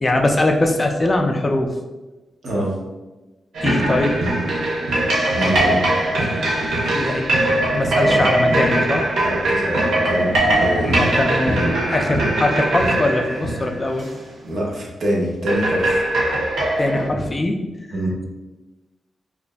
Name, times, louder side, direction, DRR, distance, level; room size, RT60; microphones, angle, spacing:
voice 1, 0.0-1.7 3.6-4.1 6.9-7.4 7.7-9.1 10.8-14.1 16.8-17.6, left 2 dB, 25° left, 3 dB, 0.4 m, -21 dB
voice 2, 2.4-2.8 5.3-5.9 7.7-8.2 9.2-10.9 11.6-11.8 14.4-16.1 17.9-18.2, equal, 60° right, -2 dB, 0.9 m, -25 dB
sound 1, 3.5-14.3 15.5-17.1, right 1 dB, 90° right, 0.9 m, -21 dB
5.0 x 2.5 x 2.3 m, 1.1 s
cardioid pair, 100°, 0 cm